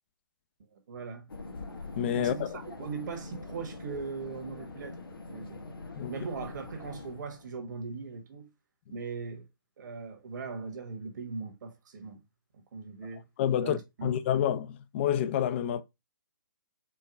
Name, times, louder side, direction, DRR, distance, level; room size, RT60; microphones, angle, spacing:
voice 1, 0.7-1.3 2.1-5.0 5.3-5.6 6.1-8.5 8.9-9.5 9.8-12.2 12.7-13.2 13.6-14.1, right 5 dB, 55° right, 1.3 m, -39 dB
sound 1, 1.3-7.5, left 3 dB, 85° left, 1.1 m, -44 dB
voice 2, 2.0-2.5 6.0-6.1 13.4-15.8, left 9 dB, 30° left, 0.3 m, -28 dB
4.6 x 2.2 x 4.6 m
hypercardioid pair, 150°, 12 cm